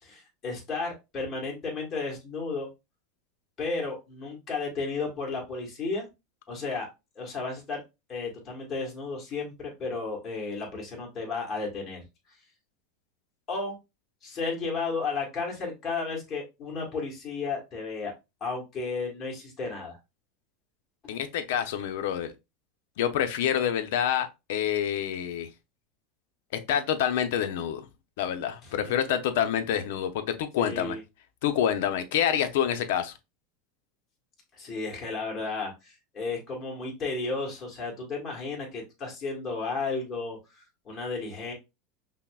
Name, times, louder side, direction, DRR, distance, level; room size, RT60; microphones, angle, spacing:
voice 1, 0.0-2.7 3.6-6.1 6.5-6.9 7.1-7.8 8.1-12.0 13.5-13.7 14.2-18.1 18.4-20.0 28.6-28.7 30.6-31.0 34.6-41.5, left 4 dB, 30° left, 1.7 m, -33 dB
voice 2, 21.1-22.3 23.0-25.5 26.5-27.8 28.2-31.0 31.4-33.1, left 9 dB, 75° left, 0.6 m, -27 dB
5.6 x 2.1 x 2.3 m
supercardioid pair, 135°, 0 cm